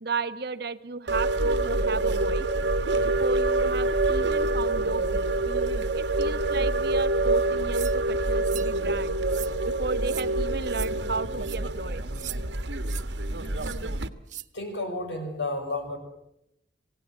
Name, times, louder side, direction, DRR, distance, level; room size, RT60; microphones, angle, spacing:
voice 1, 0.0-2.5 3.2-5.3 5.9-9.2 9.7-12.0, right 4 dB, 60° right, 11 dB, 1.2 m, -34 dB
sound 1, 1.1-14.1, right 2 dB, 85° right, 1.5 m, -26 dB
sound 2, 7.7-8.0 8.4-8.7 9.3-9.5 10.0-10.3 10.7-10.9 11.4-11.6 12.1-12.4 12.8-13.0 13.6-13.8 14.3-14.5, right 13 dB, 45° right, 0.9 m, -39 dB
voice 2, 14.5-16.0, left 2 dB, 80° left, 6 dB, 6.2 m, -31 dB
27.5 x 17.5 x 9.6 m, 0.82 s
head